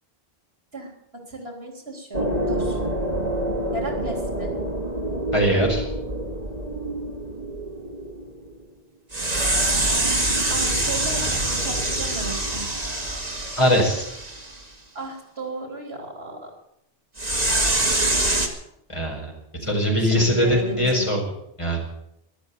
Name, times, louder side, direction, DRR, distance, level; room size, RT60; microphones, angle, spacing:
voice 1, 1.3-2.8 3.7-4.5 10.5-12.6 14.9-16.5 19.6-21.0, right 2 dB, 75° right, 2 dB, 4.0 m, -34 dB
sound 1, 2.1-8.5 9.1-14.6 17.2-18.5, right 1 dB, 40° right, 2.2 m, -25 dB
voice 2, 5.3-5.8 13.6-14.1 18.9-19.3 19.6-21.2 21.6-21.8, equal, 30° left, -1 dB, 4.9 m, -21 dB
13.5 x 12.0 x 8.5 m, 0.80 s
omnidirectional pair, 1.1 m